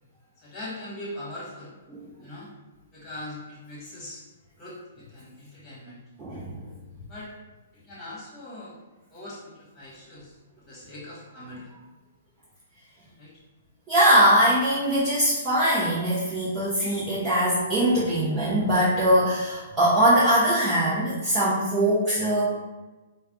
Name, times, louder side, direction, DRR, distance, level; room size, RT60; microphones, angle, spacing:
voice 1, 0.4-1.7 2.2-2.5 2.9-4.3 4.6-6.0 7.1-7.3 7.7-8.8 9.1-10.3 10.7-11.7 13.2-13.3, left 1 dB, 20° left, -7 dB, 1.3 m, -41 dB
voice 2, 6.2-6.6 13.9-22.4, right 1 dB, 20° right, -11 dB, 0.9 m, -22 dB
3.2 x 2.3 x 3.7 m, 1.2 s
hypercardioid pair, 155°, 0 cm